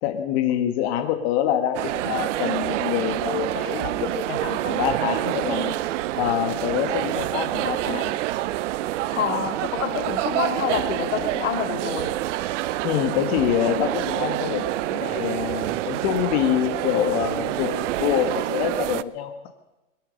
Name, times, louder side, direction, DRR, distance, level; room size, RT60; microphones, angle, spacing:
voice 1, 0.0-5.7 6.2-8.1 12.8-19.3, left 11 dB, 55° left, 5 dB, 1.9 m, -26 dB
sound 1, 1.7-19.0, right 15 dB, 65° right, 0.7 m, -27 dB
voice 2, 9.1-12.1, left 7 dB, 85° left, 6 dB, 2.5 m, -27 dB
22.5 x 11.5 x 5.4 m, 1.0 s
hypercardioid pair, 120°, 38 cm